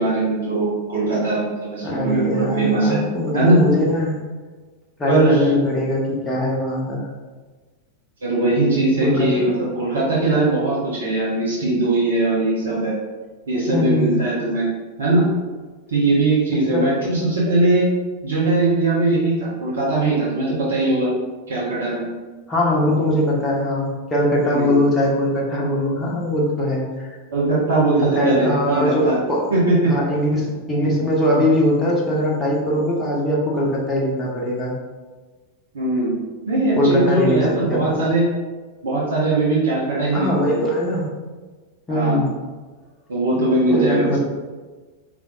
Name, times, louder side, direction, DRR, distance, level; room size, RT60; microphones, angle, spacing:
voice 1, 0.0-3.0 3.3-3.6 5.1-5.5 8.2-12.9 13.5-14.7 15.0-15.3 15.9-17.9 18.2-21.1 21.5-22.0 24.5-24.7 27.3-29.2 29.5-29.9 35.7-36.1 36.4-38.3 38.8-40.6 41.9-42.2 43.1-44.2, right 2 dB, 65° right, -7 dB, 1.3 m, -20 dB
voice 2, 1.8-4.1 5.0-7.1 9.0-9.6 13.7-14.1 16.7-16.9 22.5-27.1 28.1-29.4 29.8-34.7 36.8-38.1 40.1-41.1 41.9-42.3 43.7-44.2, left 1 dB, 15° left, -4 dB, 1.1 m, -21 dB
4.9 x 3.6 x 2.6 m, 1.3 s
figure-of-eight pair, 90°, 0 cm